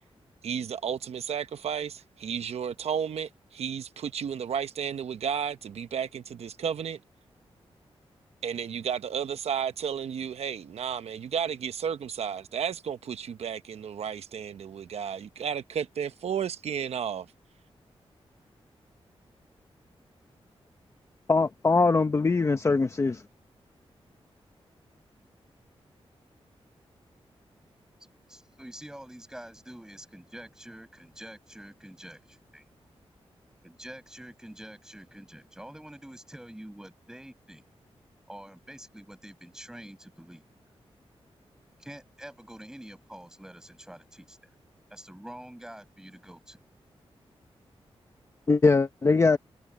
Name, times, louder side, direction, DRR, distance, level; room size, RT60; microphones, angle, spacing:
voice 1, 0.4-7.0 8.4-17.3, right 8 dB, 85° right, 0.9 m, -33 dB
voice 2, 21.3-23.2 48.5-49.4, left 3 dB, 30° left, 0.8 m, -22 dB
voice 3, 28.3-32.7 33.6-37.6 38.3-40.4 41.8-44.4 44.9-46.6, right 1 dB, 5° right, 6.3 m, -46 dB
wide cardioid pair, 155°, 10 cm